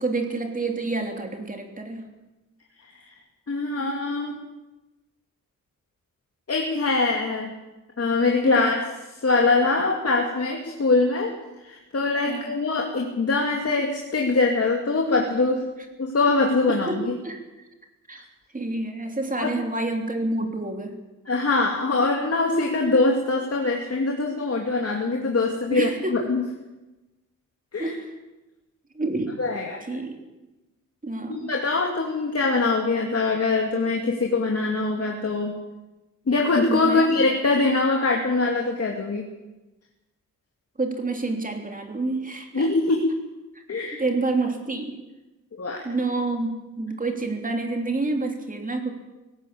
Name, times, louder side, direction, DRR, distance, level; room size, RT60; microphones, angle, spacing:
voice 1, 0.0-2.0 8.5-8.7 12.3-12.5 16.7-17.4 18.1-18.2 18.5-20.9 25.7-26.2 27.8-28.1 28.9-29.3 29.9-30.1 31.0-31.5 36.7-37.1 40.8-42.7 44.0-45.0 45.8-48.9, right 2 dB, 25° right, 4 dB, 3.2 m, -28 dB
voice 2, 3.5-4.4 6.5-7.5 8.0-8.8 9.2-11.3 11.6-15.6 16.0-17.2 19.4-19.5 21.3-26.4 27.7-27.9 29.4-29.8 31.3-35.5 36.3-39.2 42.5-43.0 43.7-44.0 45.5-45.8, left 3 dB, 50° left, 1 dB, 2.6 m, -23 dB
18.0 x 17.0 x 8.6 m, 1.1 s
wide cardioid pair, 130°, 32 cm